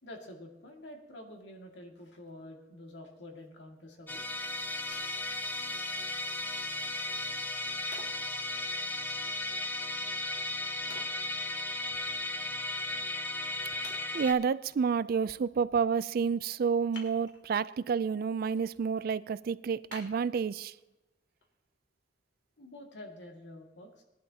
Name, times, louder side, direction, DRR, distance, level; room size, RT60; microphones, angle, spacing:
voice 1, 0.0-4.2 22.6-24.0, left 1 dB, 85° left, 2.2 m, -48 dB
Musical instrument, 4.1-14.3, left 2 dB, 10° left, 0.7 m, -35 dB
Wood, 4.9-6.0 6.5-6.6 7.9-8.3 10.9-12.0 12.4-12.5 13.1-13.2 13.8-14.5 16.9-17.7 18.1-18.6 19.0-19.1 19.9-20.9 21.4-21.5, left 3 dB, 70° left, 2.5 m, -51 dB
voice 2, 14.1-20.7, right 6 dB, 55° right, 0.3 m, -29 dB
20.0 x 11.0 x 2.8 m
head